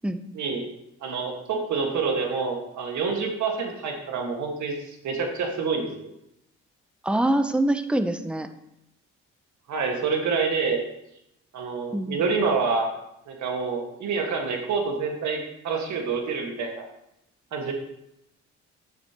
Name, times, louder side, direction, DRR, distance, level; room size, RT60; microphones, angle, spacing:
voice 1, 0.3-0.7 1.0-4.7 5.0-5.9 9.7-10.8 11.5-12.9 13.3-16.8 17.5-17.7, right 5 dB, 70° right, 2 dB, 1.7 m, -27 dB
voice 2, 7.0-8.5 11.9-12.2, right 1 dB, 5° right, 9 dB, 0.7 m, -24 dB
10.5 x 7.0 x 3.0 m, 0.81 s
cardioid pair, 90°, 30 cm